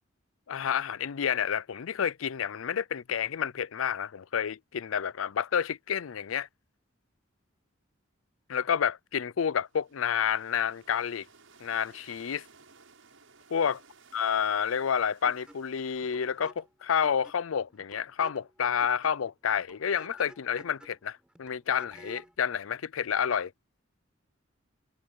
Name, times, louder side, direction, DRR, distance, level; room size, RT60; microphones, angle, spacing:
voice 1, 0.5-6.5 8.5-11.3 11.6-12.4 13.5-13.8 14.1-23.5, left 7 dB, 85° left, 0.5 m, -29 dB
Ocean Wave, 9.6-16.7, right 4 dB, 80° right, 7.9 m, -59 dB
sound 1, 15.2-22.4, equal, 5° right, 5.2 m, -54 dB
head